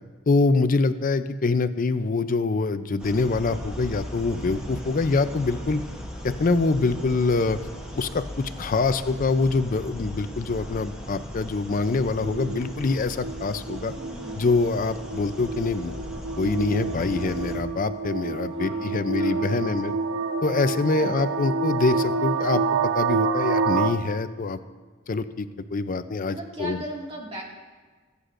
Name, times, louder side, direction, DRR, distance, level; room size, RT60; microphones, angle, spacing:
voice 1, 0.3-5.8 6.2-7.6 8.0-13.9 14.4-15.9 16.4-19.9 20.4-22.6 22.9-24.6 25.1-26.8, left 3 dB, 40° left, 11 dB, 0.5 m, -25 dB
sound 1, 3.0-17.6, equal, 5° right, 1.4 m, -38 dB
sound 2, 11.9-23.9, right 4 dB, 80° right, 0.7 m, -28 dB
voice 2, 14.0-14.5 18.5-20.1 21.0-21.2 26.3-27.4, right 1 dB, 30° right, -3 dB, 2.0 m, -39 dB
22.0 x 8.2 x 2.5 m, 1.4 s
head